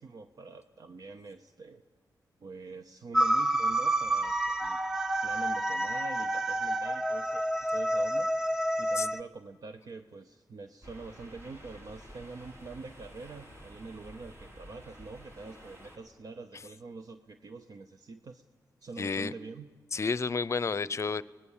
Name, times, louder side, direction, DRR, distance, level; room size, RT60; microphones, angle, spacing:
voice 1, 0.0-1.8 2.4-4.9 5.2-7.4 7.7-18.4 18.8-19.7, right 3 dB, 60° right, 8 dB, 0.8 m, -45 dB
sound 1, 3.1-9.2, right 1 dB, 5° right, 0.7 m, -29 dB
sound 2, 10.8-16.0, equal, 40° right, 4.7 m, -51 dB
voice 2, 19.0-19.3 19.9-21.2, left 4 dB, 45° left, 18 dB, 0.6 m, -30 dB
24.5 x 19.0 x 7.3 m, 1.4 s
wide cardioid pair, 90°, 7 cm